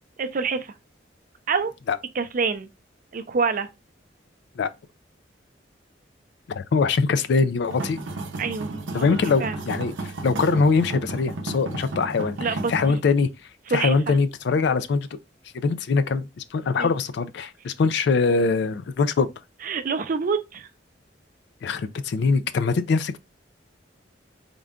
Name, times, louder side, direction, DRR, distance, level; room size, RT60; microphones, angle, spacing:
voice 1, 0.2-0.7 1.5-1.7 2.1-2.7 3.1-3.7 8.4-9.6 12.4-13.0 13.7-14.2 16.8-16.9 19.6-20.7, right 5 dB, 45° right, 0.4 m, -27 dB
voice 2, 6.5-8.0 8.9-12.4 12.7-13.3 13.7-15.1 15.5-19.3 21.6-23.2, left 4 dB, 65° left, 0.4 m, -22 dB
sound 1, 7.7-12.9, right 2 dB, 85° right, 0.6 m, -33 dB
3.7 x 2.2 x 3.6 m
head